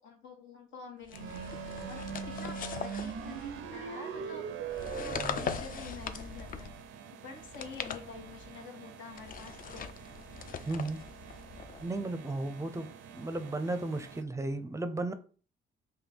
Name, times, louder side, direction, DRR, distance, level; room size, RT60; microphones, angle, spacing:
voice 1, 0.0-1.5 1.9-4.5 5.0-6.7 7.2-9.9, left 5 dB, 80° left, 1.2 m, -48 dB
sound 1, 1.1-3.8 4.7-6.9 7.4-8.6 9.1-12.0, left 7 dB, 45° left, 0.4 m, -41 dB
sound 2, 1.1-14.2, right 7 dB, 85° right, 0.5 m, -43 dB
voice 2, 10.7-11.0 11.8-15.1, right 2 dB, 15° right, 0.5 m, -35 dB
4.0 x 2.7 x 3.4 m
cardioid pair, 90°, 20 cm